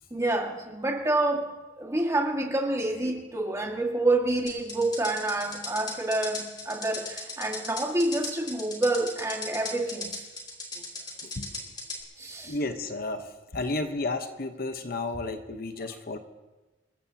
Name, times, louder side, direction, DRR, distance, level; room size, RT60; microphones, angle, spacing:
voice 1, 0.1-1.5 1.8-10.1 12.2-12.6, right 2 dB, 15° right, 1 dB, 1.8 m, -28 dB
sound 1, 4.5-12.0, left 2 dB, 25° left, 3.0 m, -37 dB
voice 2, 11.2-11.5 12.4-16.2, left 2 dB, 55° left, 7 dB, 0.9 m, -32 dB
27.5 x 15.0 x 2.8 m, 1.2 s
head